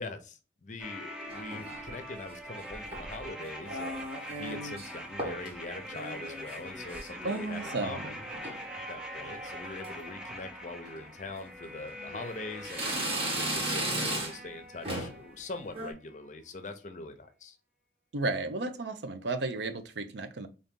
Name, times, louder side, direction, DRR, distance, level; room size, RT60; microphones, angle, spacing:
voice 1, 0.0-4.0 4.4-8.2 8.9-12.9 13.3-17.6, left 3 dB, 45° left, 0.6 m, -42 dB
sound 1, 0.8-15.8 16.1-16.2, equal, 5° right, 0.5 m, -43 dB
sound 2, 1.3-2.0 2.7-3.2 3.7-4.9 5.2-5.5 5.8-7.8 8.1-8.6 9.2-9.5 9.8-9.9 10.9-11.0 11.6-12.3 12.6-14.5 14.8-15.2 15.6-15.9, right 1 dB, 30° right, 1.1 m, -36 dB
voice 2, 7.2-8.0 18.1-20.5, right 3 dB, 75° right, 0.6 m, -33 dB
3.9 x 2.6 x 3.6 m
head